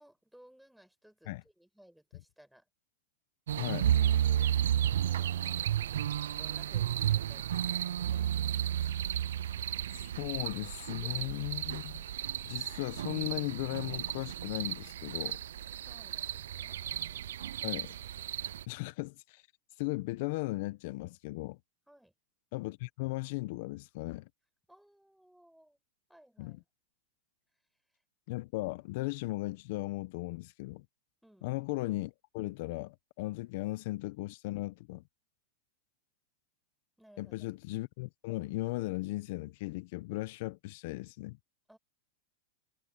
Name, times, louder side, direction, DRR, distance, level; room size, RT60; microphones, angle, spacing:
voice 1, 0.0-2.7 4.8-5.4 6.4-7.8 11.0-11.5 15.3-15.4 15.9-16.8 21.9-22.1 24.7-25.8 26.1-26.7 27.9-28.0 31.2-31.6 37.0-37.5 41.7-41.8, right 1 dB, ahead, 5.2 m, -60 dB
sound 1, 3.5-18.6, right 10 dB, 80° right, 0.4 m, -33 dB
voice 2, 3.6-3.9 8.8-9.0 10.2-12.0 12.4-15.4 17.6-17.9 18.7-19.5 19.8-21.6 22.5-24.3 26.4-26.6 28.3-30.8 31.4-35.0 37.2-41.4, left 21 dB, 60° left, 0.8 m, -37 dB
hypercardioid pair, 120°, 0 cm